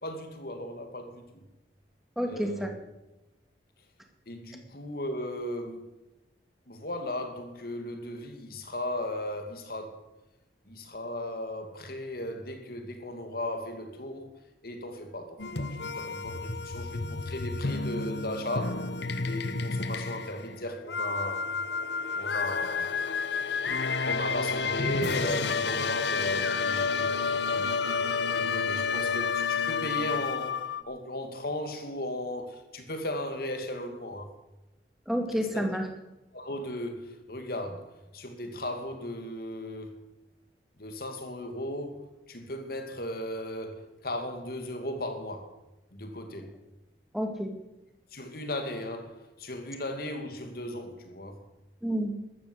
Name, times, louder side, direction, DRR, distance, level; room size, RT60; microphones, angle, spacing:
voice 1, 0.0-1.4 2.3-2.7 4.3-5.9 6.7-10.1 10.7-14.3 14.6-18.9 19.2-21.5 22.2-23.5 24.0-28.0 28.3-34.3 35.5-35.7 36.3-40.1 40.8-45.5 45.9-46.5 48.1-51.4, left 1 dB, 55° left, 2.6 m, -36 dB
voice 2, 2.2-2.7 35.1-35.8 47.1-47.5 51.8-52.1, equal, ahead, 2.3 m, -29 dB
sound 1, 15.4-30.8, left 4 dB, 80° left, 1.1 m, -30 dB
13.5 x 13.0 x 8.1 m
head